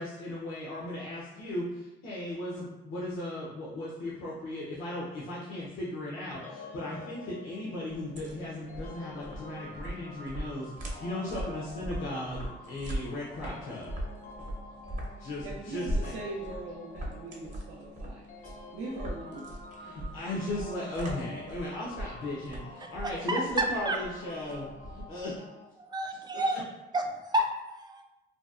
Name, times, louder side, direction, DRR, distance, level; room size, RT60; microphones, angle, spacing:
voice 1, 0.0-13.9 15.2-16.1 19.8-24.7 24.9-25.4 26.3-26.5, left 1 dB, 85° left, -6 dB, 0.6 m, -37 dB
sound 1, 6.4-25.6, left 2 dB, 40° left, 0.5 m, -47 dB
sound 2, 7.9-25.4, right 1 dB, 40° right, 0.7 m, -40 dB
voice 2, 15.4-19.4 19.8-20.0, right 2 dB, 90° right, -5 dB, 0.5 m, -41 dB
voice 3, 23.3-24.0 25.8-26.6 26.9-28.0, right 1 dB, 20° right, 3 dB, 0.3 m, -30 dB
2.7 x 2.2 x 2.3 m, 1.0 s
cardioid pair, 90°, 20 cm